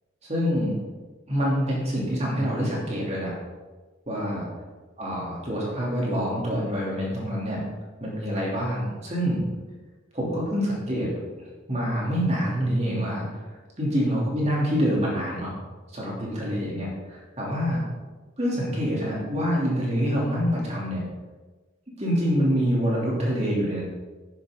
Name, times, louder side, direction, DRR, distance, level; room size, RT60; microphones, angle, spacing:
voice 1, 0.2-0.7 1.3-3.4 4.1-4.5 5.0-7.6 8.0-9.4 10.1-11.1 11.7-13.3 13.8-15.5 15.9-17.8 18.4-21.0 22.0-23.8, equal, 30° right, -5 dB, 3.5 m, -26 dB
10.5 x 10.0 x 4.1 m, 1.3 s
head